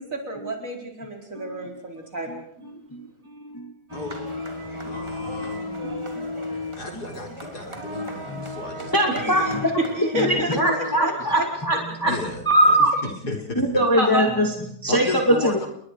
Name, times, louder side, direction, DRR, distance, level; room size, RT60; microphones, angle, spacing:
voice 1, 0.0-2.4 9.1-9.5 10.1-11.1 13.9-14.3, equal, 50° right, 1 dB, 5.1 m, -29 dB
voice 2, 2.6-4.0 4.8-4.9 5.8-6.3 8.3-8.6 8.9-12.2 12.5-12.9 13.6-15.6, right 1 dB, 10° left, 1 dB, 2.5 m, -23 dB
sound 1, 3.9-12.2, left 2 dB, 15° right, 3.6 m, -34 dB
voice 3, 4.9-5.8 6.8-8.9 9.3-9.6 12.0-13.8 14.9-15.7, left 3 dB, 65° left, 2 dB, 4.9 m, -33 dB
30.0 x 22.0 x 4.9 m, 0.66 s
omnidirectional pair, 1.8 m